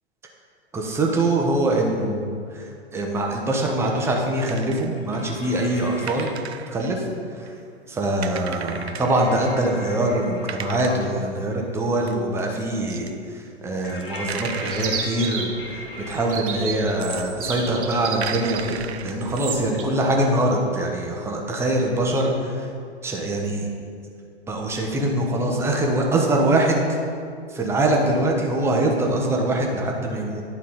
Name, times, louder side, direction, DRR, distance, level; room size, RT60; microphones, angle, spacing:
voice 1, 0.7-6.3 6.7-7.0 7.4-7.5 7.9-22.7 23.0-23.7 24.5-26.8 27.5-30.4, right 1 dB, 10° right, 0 dB, 0.7 m, -23 dB
sound 1, 4.4-5.0 5.8-5.9 6.1-7.5 7.8-7.9 8.1-9.4 9.9-10.0 10.5-11.1 12.1-12.4 12.9-13.5 13.8-15.3 16.1-17.3 17.6-17.7 18.2-19.7, right 8 dB, 70° right, 0.5 m, -37 dB
sound 2, 4.9-6.5 8.4-11.2 13.8-16.3, left 1 dB, 55° left, 1.4 m, -39 dB
Chirp tweet, 14.7-19.8, right 5 dB, 50° right, 1.2 m, -32 dB
11.0 x 4.1 x 4.2 m, 2.4 s
figure-of-eight pair, 105°, 33 cm